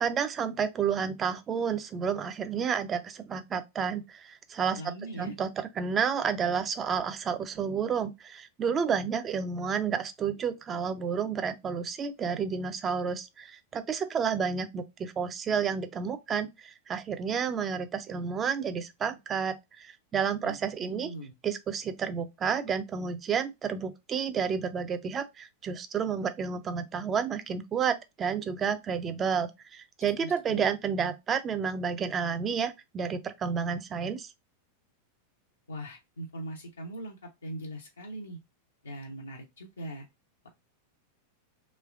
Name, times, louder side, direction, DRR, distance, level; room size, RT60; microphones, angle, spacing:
voice 1, 0.0-4.8 5.2-21.1 21.4-34.3, right 6 dB, 25° right, 0.5 m, -30 dB
voice 2, 4.8-5.3 20.4-21.3 30.2-30.7 35.7-37.2 37.4-38.4 38.8-40.1, right 1 dB, 75° left, 0.6 m, -41 dB
3.1 x 3.0 x 2.4 m
figure-of-eight pair, 90°, 0 cm